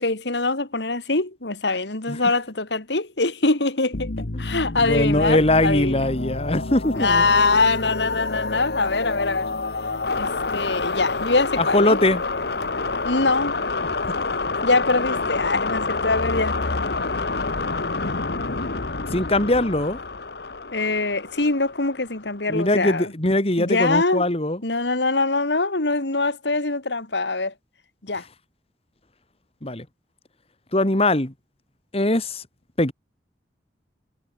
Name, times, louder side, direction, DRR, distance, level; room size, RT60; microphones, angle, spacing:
voice 1, 0.0-6.1 6.9-9.5 10.2-12.0 13.0-13.6 14.6-16.6 20.7-23.1 23.6-24.2 24.6-27.5 28.0-28.2, left 3 dB, 80° left, 2.7 m, -23 dB
sound 1, 3.9-22.4, left 3 dB, 65° left, 1.4 m, -28 dB
voice 2, 4.8-7.3 11.6-12.2 14.0-14.2 19.1-20.0 22.5-24.6 29.6-29.9 30.7-31.3 31.9-32.4 32.8-32.9, left 1 dB, 35° left, 2.2 m, -21 dB
head